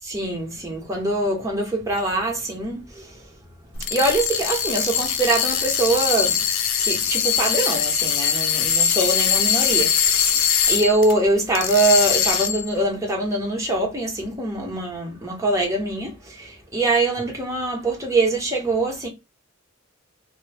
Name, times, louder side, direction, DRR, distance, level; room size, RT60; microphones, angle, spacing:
voice 1, 0.0-3.2 3.9-6.4 6.8-19.1, right 2 dB, 15° right, 0.9 m, -23 dB
sound 1, 3.7-11.1 11.5-12.7, left 8 dB, 80° left, 0.4 m, -22 dB
2.2 x 2.0 x 3.3 m
head